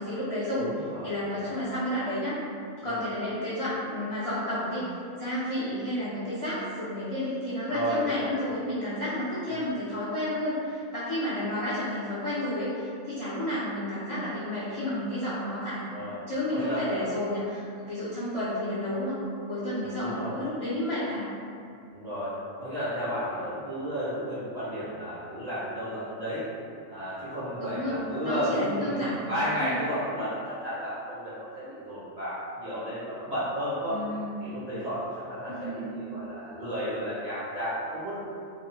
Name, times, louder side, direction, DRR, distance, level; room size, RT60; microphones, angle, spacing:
voice 1, 0.0-0.7 1.0-2.4 2.8-4.8 5.1-15.9 16.3-19.2 19.5-21.3 27.6-29.8 33.9-34.4 35.5-35.9, left 1 dB, 60° left, -12 dB, 0.3 m, -31 dB
voice 2, 0.6-1.5 2.8-3.0 7.7-8.3 9.5-9.6 15.9-16.2 16.5-16.9 19.8-20.4 21.9-26.4 26.9-34.0 34.4-38.1, equal, 45° right, -11 dB, 0.5 m, -33 dB
2.6 x 2.1 x 2.7 m, 2.5 s
omnidirectional pair, 1.4 m